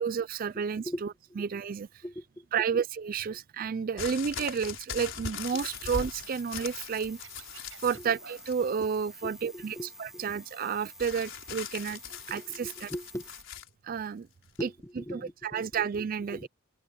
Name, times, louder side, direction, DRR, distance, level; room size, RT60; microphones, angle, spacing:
voice 1, 0.0-2.0 2.5-7.2 7.8-12.0 12.3-12.9 13.8-14.3 14.6-14.7 15.1-16.5, right 6 dB, 45° right, 0.3 m, -31 dB
voice 2, 0.5-1.0 2.0-2.4 4.1-4.2 7.9-8.1 9.2-10.3 12.3-13.3 14.6-15.8 16.3-16.5, equal, 15° left, 1.6 m, -40 dB
sound 1, 4.0-8.0 8.4-8.9 11.0-13.7 14.5-14.6, left 6 dB, 65° left, 5.1 m, -40 dB
Scratching (performance technique), 4.7-6.8 7.1-8.7, right 5 dB, 70° right, 4.9 m, -53 dB
sound 2, 5.5-13.4, equal, ahead, 2.1 m, -50 dB
head